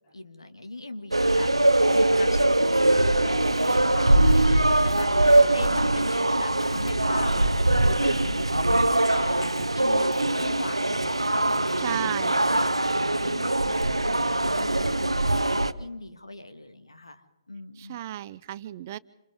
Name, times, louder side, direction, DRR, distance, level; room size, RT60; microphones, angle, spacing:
voice 1, 0.1-3.4 3.6-8.7 9.1-12.2 12.5-12.6 12.9-18.0, left 2 dB, 80° left, 8 dB, 2.0 m, -40 dB
sound 1, 1.1-15.7, right 1 dB, 85° right, 0.9 m, -22 dB
Tearing, 2.6-2.8 3.3-5.7 6.0-6.2 6.5-6.9 7.3-8.0 8.3-8.7 9.0-9.7 10.1-10.2 10.5-10.6 11.0-11.1 11.4-11.6, right 4 dB, 5° right, 2.8 m, -51 dB
voice 2, 11.8-12.4 17.8-19.0, right 13 dB, 35° right, 17 dB, 0.6 m, -33 dB
28.5 x 27.0 x 3.7 m, 1.1 s
figure-of-eight pair, 135°, 3 cm